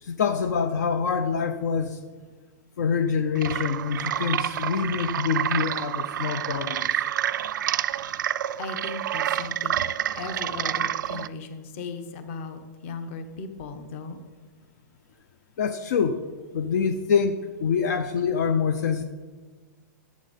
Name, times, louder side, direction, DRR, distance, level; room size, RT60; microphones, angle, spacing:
voice 1, 0.0-2.0 2.8-7.0 15.6-16.3 16.5-19.0, left 6 dB, 65° left, 9 dB, 0.6 m, -25 dB
sound 1, 3.3-11.3, right 11 dB, 90° right, 0.4 m, -28 dB
voice 2, 8.6-9.9 10.2-14.2, left 4 dB, 40° left, 9 dB, 0.9 m, -37 dB
11.5 x 7.4 x 4.1 m, 1.4 s
supercardioid pair, 170°, 10 cm